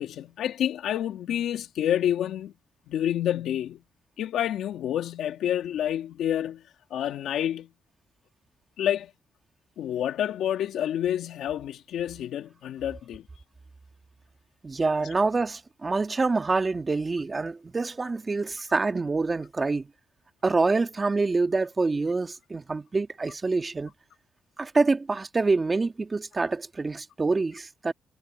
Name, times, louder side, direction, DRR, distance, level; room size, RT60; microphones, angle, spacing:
voice 1, 0.0-2.5 2.9-3.8 4.2-6.6 6.9-7.7 8.8-9.1 9.8-13.3, left 10 dB, 80° left, 2.3 m, -28 dB
voice 2, 14.6-19.9 20.4-23.9 24.6-27.9, right 3 dB, 25° right, 1.7 m, -26 dB
cardioid pair, 95°, 0 cm